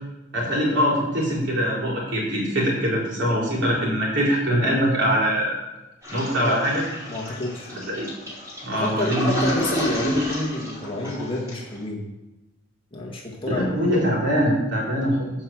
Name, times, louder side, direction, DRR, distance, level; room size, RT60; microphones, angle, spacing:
voice 1, 0.3-5.7 6.1-6.8 7.7-8.1 8.6-9.3 13.5-15.3, equal, 55° right, -4 dB, 4.1 m, -23 dB
Toilet flush, 6.0-11.8, equal, 15° right, 4.6 m, -30 dB
voice 2, 7.1-7.7 8.7-12.1 12.9-13.7, left 2 dB, 25° left, -2 dB, 1.8 m, -29 dB
11.0 x 5.7 x 7.7 m, 1.0 s
head